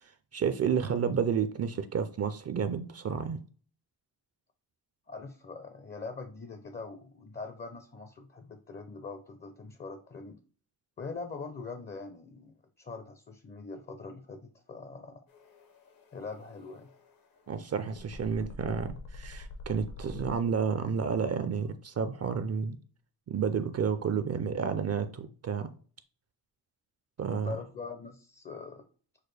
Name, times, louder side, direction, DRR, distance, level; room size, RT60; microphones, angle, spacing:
voice 1, 0.0-3.4 17.5-22.8 23.3-25.7 27.2-27.5, right 6 dB, 45° right, 11 dB, 0.4 m, -31 dB
voice 2, 5.1-10.4 11.0-15.2 16.1-16.9 27.3-28.9, left 4 dB, 30° left, 7 dB, 0.5 m, -43 dB
sound 1, 15.3-20.3, left 2 dB, 65° left, 0.8 m, -46 dB
6.4 x 2.2 x 3.2 m, 0.41 s
cardioid pair, 100°, 38 cm